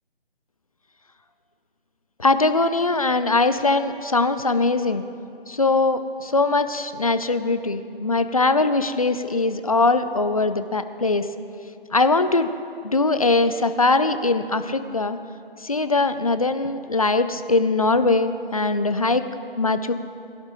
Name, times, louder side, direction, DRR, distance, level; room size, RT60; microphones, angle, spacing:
voice 1, 2.2-5.0 5.5-11.3 11.9-12.5 12.8-15.2 15.6-19.2 19.6-19.9, left 3 dB, 35° left, 10 dB, 0.5 m, -21 dB
20.5 x 11.5 x 3.1 m, 2.6 s
figure-of-eight pair, 160°, 30 cm